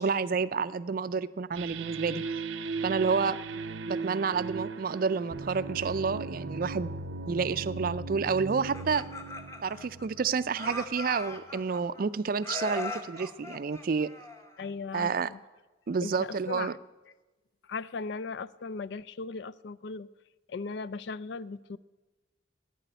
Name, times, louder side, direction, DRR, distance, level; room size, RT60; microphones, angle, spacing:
voice 1, 0.0-2.4 2.8-3.4 3.8-6.9 7.3-9.0 9.6-14.1 14.9-15.3 15.9-16.8, right 5 dB, 50° right, 0.4 m, -29 dB
sound 1, 1.5-10.9, right 4 dB, 85° right, 0.7 m, -38 dB
Laughter, 8.5-10.2 10.5-12.0 12.4-14.7, left 3 dB, 15° left, 1.0 m, -39 dB
voice 2, 14.6-15.4 16.0-16.8 17.7-20.1 20.5-21.8, left 4 dB, 65° left, 0.4 m, -37 dB
11.0 x 9.6 x 9.1 m
head